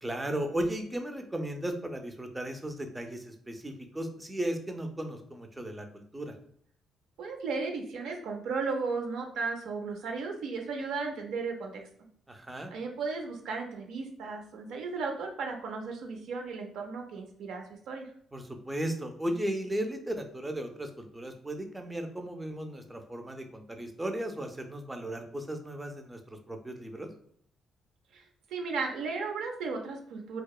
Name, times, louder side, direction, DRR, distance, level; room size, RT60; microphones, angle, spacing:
voice 1, 0.0-6.3 12.3-12.7 18.3-27.1, right 1 dB, 15° right, 5 dB, 0.4 m, -36 dB
voice 2, 7.2-11.8 12.7-18.1 28.1-28.2 28.5-30.4, right 4 dB, 80° right, 3 dB, 0.4 m, -35 dB
2.8 x 2.0 x 2.3 m, 0.62 s
cardioid pair, 90°, 0 cm